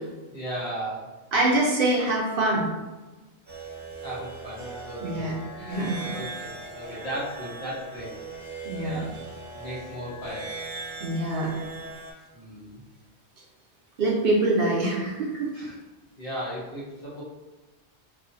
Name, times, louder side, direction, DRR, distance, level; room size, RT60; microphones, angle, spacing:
voice 1, 0.3-1.1 4.0-5.3 5.5-8.1 8.8-9.2 9.5-10.5 12.3-12.8 15.5-15.8 16.2-17.2, equal, 60° left, -7 dB, 1.1 m, -36 dB
voice 2, 1.3-2.7 5.0-5.3 5.7-6.1 8.6-9.0 11.0-11.6 14.0-15.5, right 2 dB, 60° right, -4 dB, 0.7 m, -24 dB
sound 1, 3.5-12.1, right 3 dB, 25° right, 0.4 m, -39 dB
2.5 x 2.4 x 2.5 m, 1.2 s
omnidirectional pair, 1.1 m